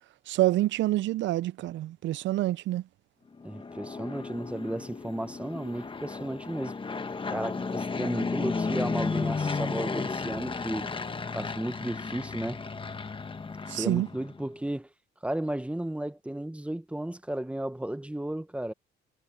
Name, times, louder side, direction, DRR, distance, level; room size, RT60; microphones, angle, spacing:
voice 1, 0.3-2.8 13.7-14.1, right 15 dB, 70° right, 0.4 m, -27 dB
Fixed-wing aircraft airplane, 3.4-14.5, left 4 dB, 25° left, 1.2 m, -34 dB
voice 2, 3.4-6.8 7.3-10.9 11.3-12.6 13.7-14.9 15.2-18.7, right 1 dB, 5° right, 0.9 m, -34 dB
sound 1, 4.1-13.9, left 9 dB, 65° left, 6.2 m, -62 dB
Wind instrument woodwind instrument, 7.6-12.7, right 3 dB, 30° right, 3.2 m, -58 dB
cardioid pair, 90°, 20 cm